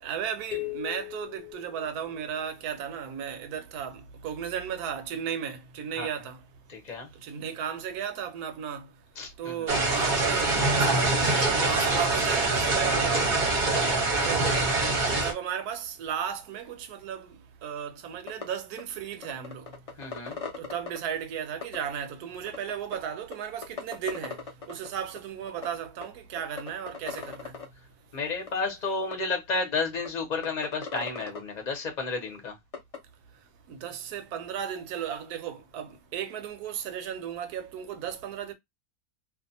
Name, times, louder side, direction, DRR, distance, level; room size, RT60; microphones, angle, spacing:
voice 1, 0.0-6.4 7.2-8.9 9.4-13.3 14.2-14.6 15.2-17.4 17.6-19.7 20.6-24.4 24.7-27.5 33.7-38.5, right 8 dB, 80° right, 1.1 m, -35 dB
sound 1, 0.5-2.5, left 22 dB, 80° left, 1.1 m, -38 dB
voice 2, 6.7-7.1 9.2-9.7 13.7-14.1 20.0-20.4 28.1-32.6, left 4 dB, 35° left, 0.8 m, -32 dB
sound 2, 9.7-15.3, right 2 dB, 40° right, 0.8 m, -24 dB
sound 3, 18.3-18.4 18.8-18.9 19.2-21.0 21.6-21.8 22.5-22.9 23.3-23.4 23.6-24.9 25.1-25.2 25.5-25.7 26.0-26.1 26.4-27.6 28.5-28.6 29.1-29.2 29.5-29.6 30.0-30.1 30.4-31.4 32.7-33.0, left 5 dB, 50° left, 0.4 m, -37 dB
2.6 x 2.3 x 2.6 m
omnidirectional pair, 1.6 m